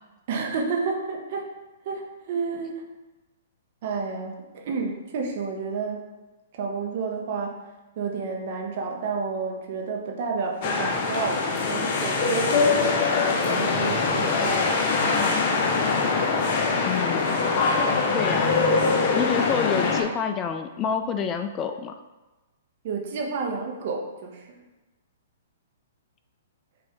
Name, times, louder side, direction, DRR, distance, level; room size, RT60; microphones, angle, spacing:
voice 1, 0.3-1.5 1.8-2.8 3.8-6.0 6.5-7.6 8.0-14.9 15.2-15.4 22.8-24.6, right 4 dB, 50° right, 1 dB, 0.9 m, -30 dB
sound 1, 10.6-20.0, left 4 dB, 45° left, 0.7 m, -23 dB
voice 2, 16.9-17.3 18.1-18.7 19.1-21.9, left 7 dB, 25° left, 6 dB, 0.3 m, -28 dB
5.6 x 2.7 x 3.5 m, 1.1 s
figure-of-eight pair, 120°, 0 cm